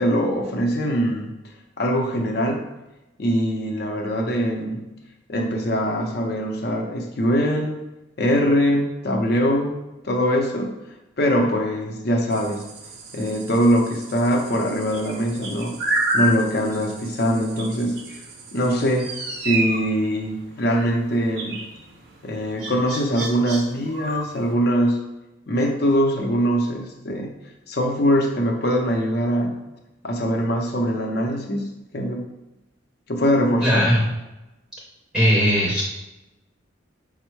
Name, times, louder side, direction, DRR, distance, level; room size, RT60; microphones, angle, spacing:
voice 1, 0.0-1.3 1.8-2.6 3.2-4.8 5.3-7.8 8.2-9.7 10.0-10.7 11.2-12.7 13.1-15.8 16.1-18.0 18.5-19.1 19.4-21.6 22.2-25.1 25.5-27.3 27.7-29.6 30.0-32.2 33.1-33.9, equal, 55° left, 2 dB, 0.6 m, -22 dB
sound 1, 12.3-24.5, right 1 dB, 55° right, 0.7 m, -31 dB
voice 2, 33.6-34.1 35.1-35.8, equal, 5° right, -5 dB, 0.6 m, -18 dB
5.3 x 2.0 x 4.5 m, 0.99 s
head